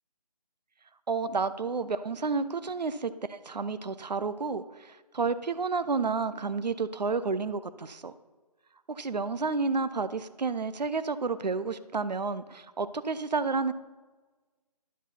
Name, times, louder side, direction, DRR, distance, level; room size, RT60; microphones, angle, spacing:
voice 1, 1.1-8.1 8.9-13.7, right 4 dB, 80° right, 13 dB, 0.6 m, -30 dB
10.0 x 4.7 x 5.7 m, 1.3 s
figure-of-eight pair, 155°, 21 cm